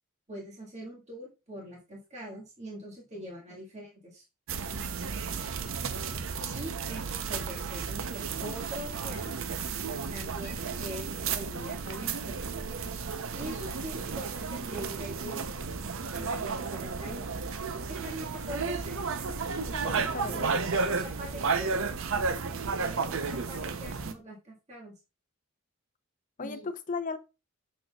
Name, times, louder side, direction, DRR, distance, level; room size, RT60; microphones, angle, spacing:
voice 1, 0.3-4.2 6.4-9.3 10.1-12.4 13.3-15.6 16.2-17.2 17.9-19.0 19.5-22.4 22.8-24.9 26.4-26.7, equal, 35° right, 1.7 m, -43 dB
sound 1, 4.5-24.1, right 5 dB, 65° right, 0.6 m, -33 dB
voice 2, 16.3-16.6 19.7-20.7 26.4-27.2, left 4 dB, 35° left, 0.6 m, -38 dB
6.4 x 6.3 x 2.3 m
head